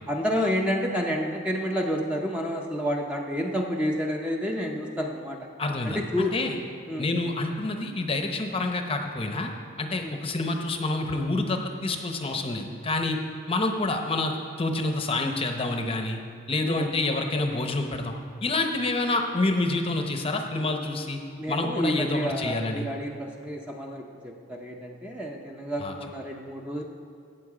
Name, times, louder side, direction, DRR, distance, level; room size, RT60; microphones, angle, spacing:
voice 1, 0.1-5.4 5.8-6.3 6.9-7.1 10.0-10.2 16.7-16.9 21.4-26.8, equal, 5° right, 1 dB, 0.7 m, -29 dB
voice 2, 5.6-6.6 7.0-9.5 9.8-13.2 13.5-16.2 16.5-18.1 18.4-21.2 21.5-22.9 25.8-25.9, left 2 dB, 25° left, 4 dB, 0.8 m, -28 dB
17.0 x 7.1 x 4.9 m, 2.4 s
head